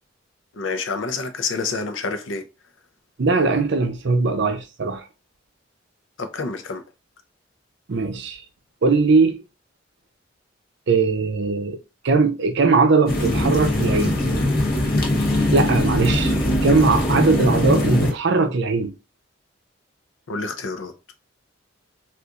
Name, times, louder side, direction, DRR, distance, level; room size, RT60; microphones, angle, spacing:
voice 1, 0.6-2.4 6.2-6.8 20.3-20.9, left 4 dB, 70° left, 0.6 m, -28 dB
voice 2, 3.2-5.1 7.9-8.4 8.8-9.4 10.9-11.8 12.0-14.2 15.5-16.4 16.6-18.9, right 4 dB, 60° right, 0.5 m, -20 dB
sound 1, 13.1-18.1, left 1 dB, 45° left, 0.9 m, -21 dB
3.9 x 2.5 x 2.4 m
head